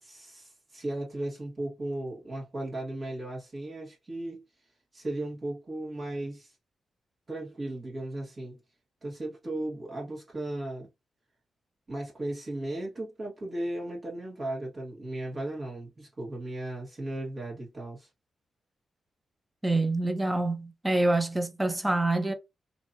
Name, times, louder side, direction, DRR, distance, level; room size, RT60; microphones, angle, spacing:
voice 1, 0.0-4.4 4.9-6.5 7.3-8.6 9.0-10.9 11.9-18.1, right 1 dB, 40° right, 1.6 m, -36 dB
voice 2, 19.6-22.3, right 2 dB, 15° right, 0.8 m, -26 dB
2.9 x 2.7 x 2.7 m
cardioid pair, 60°, 0 cm